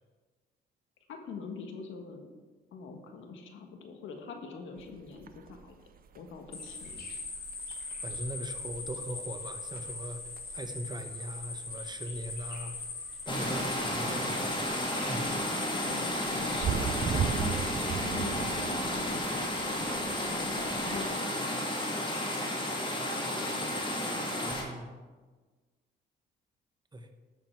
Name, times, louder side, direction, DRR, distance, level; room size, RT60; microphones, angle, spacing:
voice 1, 1.1-2.3 2.7-5.8 6.1-7.0 15.9-22.9, left 5 dB, 80° left, 5 dB, 1.5 m, -44 dB
sound 1, 4.8-21.2, right 8 dB, 45° right, 0.7 m, -39 dB
sound 2, 6.5-24.5, left 3 dB, 55° left, 2.8 m, -41 dB
voice 2, 7.9-12.8 13.3-14.6 14.9-15.7 24.4-24.9 26.9-27.1, right 1 dB, 20° right, 7 dB, 1.1 m, -40 dB
sound 3, 13.3-24.6, left 1 dB, 25° left, 2.3 m, -33 dB
11.5 x 7.1 x 4.6 m, 1.4 s
cardioid pair, 90°, 20 cm